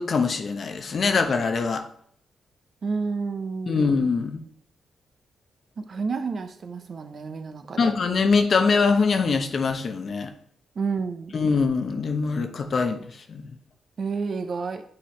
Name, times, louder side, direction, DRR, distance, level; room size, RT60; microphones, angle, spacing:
voice 1, 0.0-1.8 3.7-4.4 7.8-10.3 11.3-13.0 13.3-13.5, left 4 dB, 55° left, 6 dB, 0.8 m, -23 dB
voice 2, 2.8-4.1 5.8-7.9 10.8-11.3 14.0-14.8, right 4 dB, 55° right, 8 dB, 0.7 m, -30 dB
8.6 x 4.1 x 3.1 m, 0.62 s
cardioid pair, 65°, 0 cm